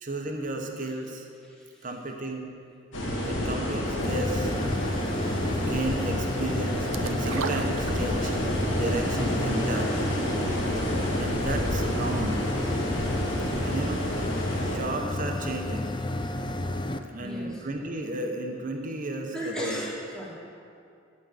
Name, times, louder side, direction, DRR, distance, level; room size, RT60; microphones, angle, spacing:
voice 1, 0.0-1.3 1.8-2.5 3.2-4.5 5.6-8.4 8.7-10.1 11.1-12.4 13.6-14.0 14.7-15.9 17.1-19.8, right 1 dB, 40° right, 3 dB, 1.0 m, -33 dB
voice 2, 1.4-1.9 17.2-17.7 19.3-20.3, equal, 5° left, -4 dB, 1.7 m, -37 dB
sound 1, 2.9-14.8, equal, 80° left, 1.9 m, -29 dB
sound 2, 4.0-17.0, left 1 dB, 25° left, 0.4 m, -31 dB
sound 3, 6.9-8.5 8.8-8.9, right 5 dB, 85° right, 0.5 m, -35 dB
11.0 x 5.3 x 7.9 m, 2.4 s
head